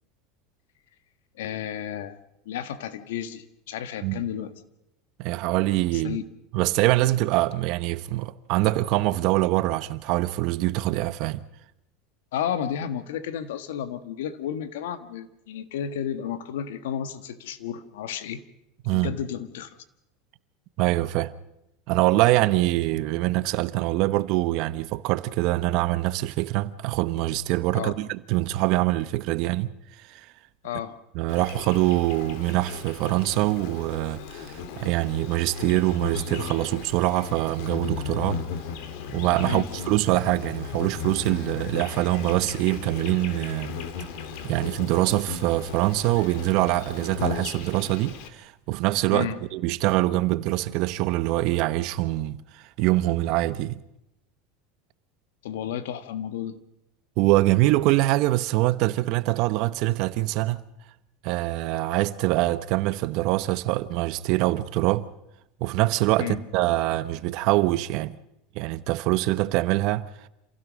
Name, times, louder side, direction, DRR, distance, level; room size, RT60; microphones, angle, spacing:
voice 1, 1.4-2.2 2.4-4.5 5.9-6.2 12.3-18.4 18.9-19.8 27.7-27.9 30.6-31.0 39.4-39.7 49.1-49.4 55.4-56.6 66.2-66.4, left 9 dB, 85° left, 1.5 m, -32 dB
voice 2, 5.2-6.2 6.5-11.4 18.8-19.1 20.8-21.3 21.9-29.7 30.1-30.2 31.1-38.4 39.1-43.8 44.4-53.8 57.2-60.6 61.2-65.1 65.6-68.2 68.5-70.1, right 17 dB, 55° right, 1.0 m, -24 dB
Insect, 31.3-48.3, left 6 dB, 65° left, 2.5 m, -36 dB
27.0 x 16.0 x 6.4 m
supercardioid pair, 130°, 0 cm